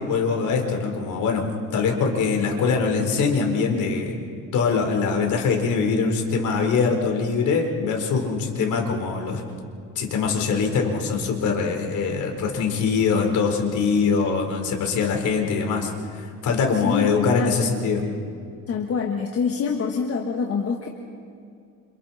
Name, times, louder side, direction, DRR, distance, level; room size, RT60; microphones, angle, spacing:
voice 1, 0.0-4.2 4.5-9.4 10.0-18.0, left 5 dB, 60° left, 2 dB, 4.3 m, -23 dB
voice 2, 16.8-17.5 18.7-20.9, left 5 dB, 45° left, 1 dB, 1.7 m, -25 dB
29.0 x 28.0 x 4.3 m, 2.4 s
cardioid pair, 145°, 33 cm